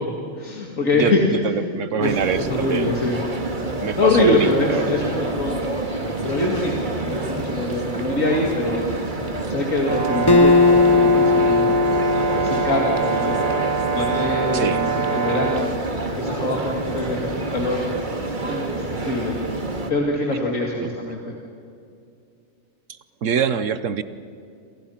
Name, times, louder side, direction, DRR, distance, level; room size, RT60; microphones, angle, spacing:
voice 1, 0.0-1.2 2.0-3.2 3.9-5.6 6.2-8.9 9.5-11.8 12.4-17.9 18.4-19.3 19.9-21.3, left 2 dB, 80° left, 0 dB, 2.7 m, -24 dB
voice 2, 0.9-2.9 3.8-4.9 11.5-11.6 14.5-14.8 20.8-20.9 23.2-24.0, right 7 dB, 70° right, 13 dB, 1.2 m, -25 dB
sound 1, 2.0-19.9, right 2 dB, 35° right, 2.1 m, -28 dB
Brass instrument, 9.8-15.7, right 6 dB, 85° right, 2.6 m, -24 dB
Acoustic guitar, 10.3-13.7, left 4 dB, 20° left, 0.8 m, -18 dB
28.0 x 27.0 x 5.8 m, 2.5 s
omnidirectional pair, 1.4 m